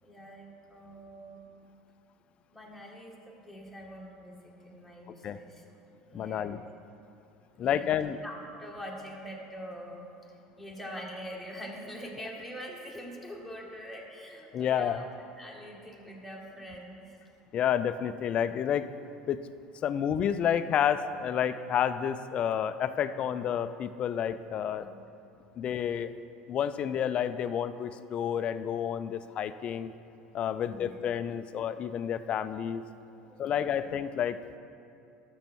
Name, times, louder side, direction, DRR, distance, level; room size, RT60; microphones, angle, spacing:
voice 1, 0.0-1.4 2.5-5.6 6.0-6.6 7.5-8.0 8.2-10.1 10.6-15.1 15.4-17.1 24.8-24.9 30.6-31.0 33.2-33.9, equal, ahead, -3 dB, 2.0 m, -44 dB
voice 2, 6.1-6.6 7.6-8.2 14.5-15.0 17.5-18.9 19.3-19.4 19.8-24.9 25.6-26.2 26.5-29.9 30.3-32.8 33.4-34.4, left 9 dB, 45° left, 12 dB, 0.5 m, -30 dB
12.0 x 7.0 x 4.5 m, 2.7 s
hypercardioid pair, 80°, 3 cm